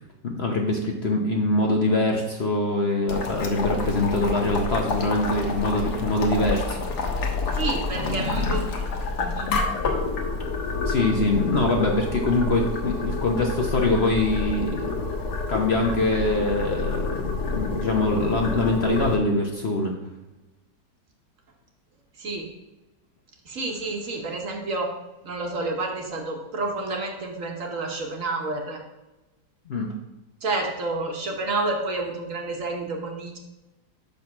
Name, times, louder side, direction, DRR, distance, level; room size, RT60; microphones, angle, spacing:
voice 1, 0.2-7.2 7.9-8.6 10.9-15.0 15.5-19.9 29.7-29.9, left 2 dB, 50° left, 1 dB, 0.9 m, -24 dB
Boiling, 3.1-19.2, left 3 dB, 75° left, 1.6 m, -28 dB
voice 2, 7.5-8.6 9.2-9.5 22.2-22.4 23.5-24.9 25.2-28.8 30.4-33.4, right 2 dB, 55° right, 2 dB, 1.4 m, -29 dB
6.3 x 5.3 x 5.9 m, 1.0 s
omnidirectional pair, 1.8 m